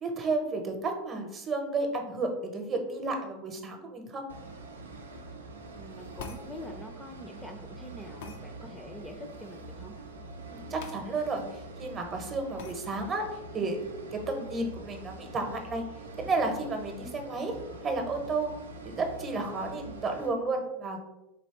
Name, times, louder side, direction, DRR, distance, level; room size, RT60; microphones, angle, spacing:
voice 1, 0.0-4.2 10.4-13.3 13.5-15.8 16.2-17.5 17.8-18.5 18.8-21.0, right 3 dB, 35° right, 4 dB, 0.9 m, -32 dB
sound 1, 4.3-20.3, right 3 dB, 85° right, 0.5 m, -45 dB
voice 2, 5.7-9.9, equal, 10° left, 3 dB, 0.5 m, -45 dB
sound 2, 6.2-6.5 8.2-8.4 10.8-11.0 11.4-11.5 12.6-12.8, left 5 dB, 65° left, 0.4 m, -42 dB
4.1 x 3.0 x 2.9 m, 0.95 s
hypercardioid pair, 85°, 0 cm